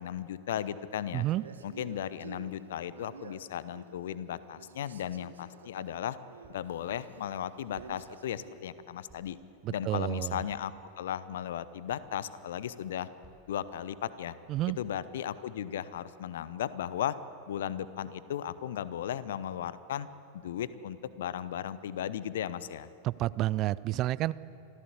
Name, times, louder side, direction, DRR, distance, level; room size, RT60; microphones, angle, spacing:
voice 1, 0.0-1.3 1.6-6.2 6.5-9.4 9.7-10.7 11.0-13.1 13.5-14.4 14.8-17.2 17.5-20.1 20.3-22.9, left 10 dB, 60° left, 16 dB, 0.9 m, -36 dB
voice 2, 1.1-1.4 9.6-10.4 14.5-14.8 23.0-24.3, right 16 dB, 35° right, 19 dB, 0.5 m, -30 dB
Male speech man speaking, 1.3-4.3 4.6-8.7, right 5 dB, 70° right, 1.3 m, -51 dB
sound 1, 6.4-6.8 7.7-8.2 9.1-9.4 10.5-10.8 11.9-12.1 13.2-13.7 14.5-15.0, right 5 dB, 15° right, 4.2 m, -60 dB
25.0 x 15.5 x 8.3 m, 2.7 s
figure-of-eight pair, 90°, 0 cm